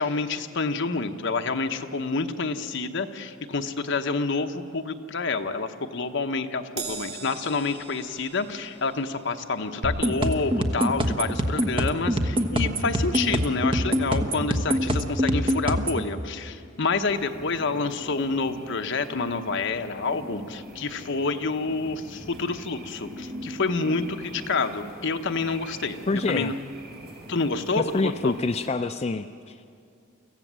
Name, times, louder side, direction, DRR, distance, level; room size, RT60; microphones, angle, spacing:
voice 1, 0.0-26.5 27.3-28.3, left 4 dB, 65° left, 7 dB, 1.0 m, -28 dB
Crash cymbal, 6.8-13.4 13.7-14.0 15.0-15.1, right 5 dB, 85° right, 3.4 m, -44 dB
sound 1, 9.8-16.0, equal, 25° right, 1.1 m, -25 dB
sound 2, 17.0-28.7, right 1 dB, 50° right, 4.1 m, -43 dB
voice 2, 26.1-26.6 27.8-29.7, left 3 dB, 30° left, 7 dB, 0.4 m, -27 dB
25.0 x 15.0 x 7.5 m, 2.4 s
head